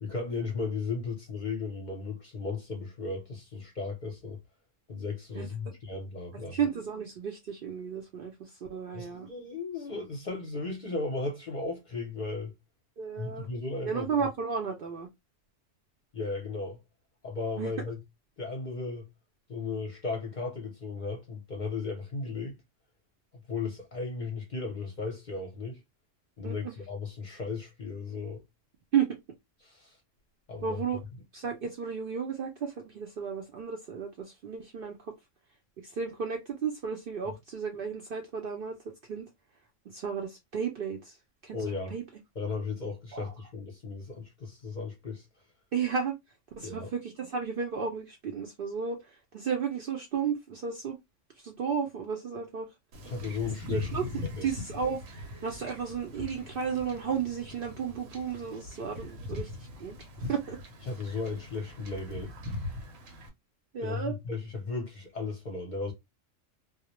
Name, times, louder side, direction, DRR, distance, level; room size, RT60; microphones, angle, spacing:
voice 1, 0.0-4.4 4.9-6.6 8.9-12.5 13.2-14.1 16.1-16.8 17.2-18.0 18.4-19.1 19.5-22.6 23.3-25.8 26.4-28.4 29.6-30.0 30.5-30.8 41.5-42.0 42.4-45.2 46.6-46.9 53.0-53.9 54.4-54.5 60.9-62.3 63.8-65.9, left 4 dB, 50° left, 0.6 m, -35 dB
voice 2, 6.5-9.3 13.0-13.5 13.8-15.1 17.6-17.7 26.4-26.7 28.9-29.1 30.6-31.0 31.3-35.0 35.8-38.8 39.1-39.3 39.9-41.2 41.4-41.6 41.9-42.0 43.1-43.3 45.7-46.1 46.6-51.0 51.4-52.7 53.7-54.1 54.4-59.5 59.8-60.6 63.7-64.2, right 6 dB, 65° right, 0.6 m, -33 dB
Wind / Ocean / Boat Water vehicle, 52.9-63.3, left 2 dB, 80° right, 1.0 m, -41 dB
2.3 x 2.0 x 2.8 m
omnidirectional pair, 1.3 m